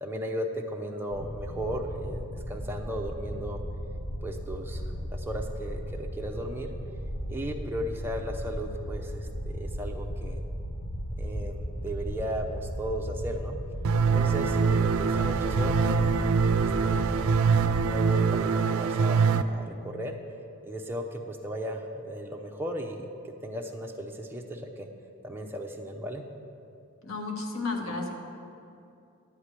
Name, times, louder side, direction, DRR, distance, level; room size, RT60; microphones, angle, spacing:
voice 1, 0.0-3.6 4.2-6.7 7.3-10.4 11.2-13.6 14.1-17.2 17.8-20.2 20.6-24.9 25.2-26.3, equal, 10° right, 1 dB, 0.6 m, -36 dB
sound 1, 1.1-17.9, equal, 25° left, 0.7 m, -35 dB
sound 2, 13.8-19.4, right 5 dB, 80° right, 0.4 m, -24 dB
voice 2, 27.0-28.1, left 3 dB, 70° left, 2 dB, 1.2 m, -32 dB
10.5 x 4.9 x 7.4 m, 2.6 s
head